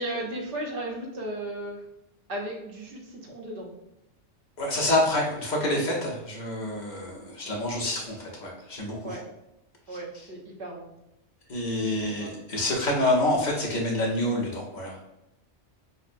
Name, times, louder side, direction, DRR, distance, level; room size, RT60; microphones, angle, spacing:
voice 1, 0.0-1.8 2.3-3.7 9.0-9.2 9.9-10.9 12.0-12.3, right 1 dB, 55° right, -1 dB, 0.9 m, -35 dB
voice 2, 4.6-9.2 11.5-15.0, left 1 dB, 40° left, -3 dB, 0.8 m, -27 dB
5.4 x 2.0 x 2.5 m, 0.90 s
omnidirectional pair, 1.2 m